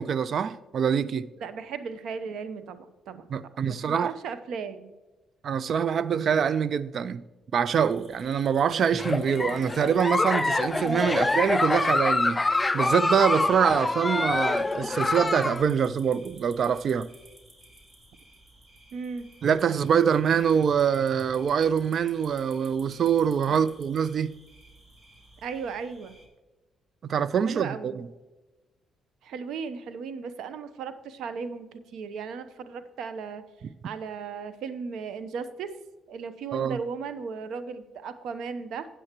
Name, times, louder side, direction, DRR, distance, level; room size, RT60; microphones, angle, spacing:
voice 1, 0.0-1.3 3.3-4.1 5.4-7.2 7.5-17.1 19.4-24.3 27.0-28.1 36.5-36.8, right 7 dB, 55° right, 0.4 m, -25 dB
voice 2, 1.4-3.3 3.9-4.9 18.9-19.3 23.5-23.6 25.4-26.2 27.5-28.0 29.2-33.4 33.8-35.7 36.1-38.9, right 5 dB, 80° right, 0.8 m, -36 dB
sound 1, 7.6-26.3, right 1 dB, 35° right, 2.4 m, -55 dB
Giggle, 8.9-15.6, left 2 dB, 20° left, 0.4 m, -26 dB
Bass guitar, 9.1-13.5, left 9 dB, 90° left, 0.5 m, -48 dB
13.0 x 8.7 x 2.9 m
cardioid pair, 90°, 0 cm